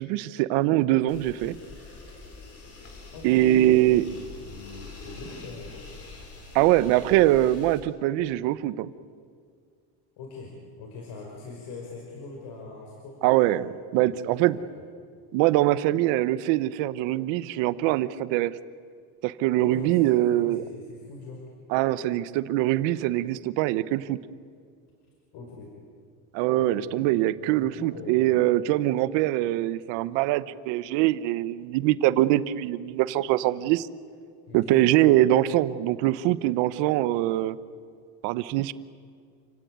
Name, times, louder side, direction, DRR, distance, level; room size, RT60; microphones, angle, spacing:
voice 1, 0.0-1.5 3.2-4.0 6.5-8.9 13.2-14.6 15.3-18.5 19.2-20.6 21.7-24.2 26.3-33.9 34.5-37.6 38.2-38.7, right 15 dB, 80° right, 15 dB, 1.1 m, -23 dB
sound 1, 1.1-7.8, left 3 dB, 35° left, 4.6 m, -45 dB
voice 2, 3.1-6.0 10.2-13.2 13.5-13.6 14.1-14.6 19.6-21.5 25.3-25.7 26.6-27.0 27.6-28.4 34.5-34.8, left 3 dB, 65° left, 0 dB, 5.2 m, -42 dB
29.5 x 16.5 x 9.4 m, 2.2 s
cardioid pair, 135°, 43 cm